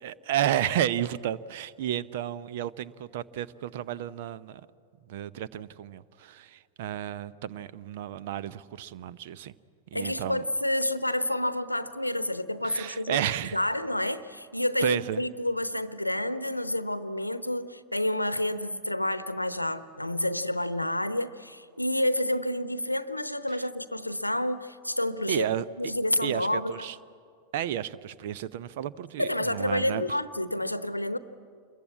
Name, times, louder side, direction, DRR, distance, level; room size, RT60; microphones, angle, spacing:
voice 1, 0.0-4.7 5.1-9.5 9.9-10.4 12.6-13.6 14.8-15.2 25.3-25.6 26.2-27.0 27.5-30.0, right 11 dB, 50° right, 17 dB, 0.7 m, -32 dB
voice 2, 9.9-13.2 13.5-25.5 25.8-26.9 29.2-31.2, left 1 dB, 85° left, 14 dB, 0.9 m, -29 dB
27.5 x 22.0 x 8.5 m, 2.2 s
figure-of-eight pair, 90°, 0 cm